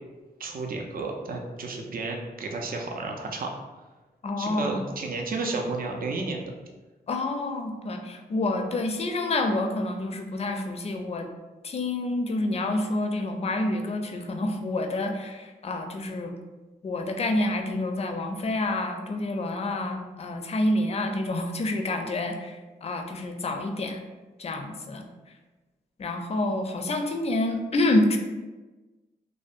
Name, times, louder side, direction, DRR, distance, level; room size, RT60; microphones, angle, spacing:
voice 1, 0.4-3.5 4.4-6.5, right 3 dB, 50° right, 1 dB, 0.5 m, -32 dB
voice 2, 4.2-4.8 7.1-11.3 11.6-16.3 16.8-22.5 22.8-24.0 24.4-25.0 26.0-28.2, left 2 dB, 35° left, 4 dB, 0.4 m, -28 dB
2.5 x 2.1 x 2.4 m, 1.2 s
supercardioid pair, 45°, 18 cm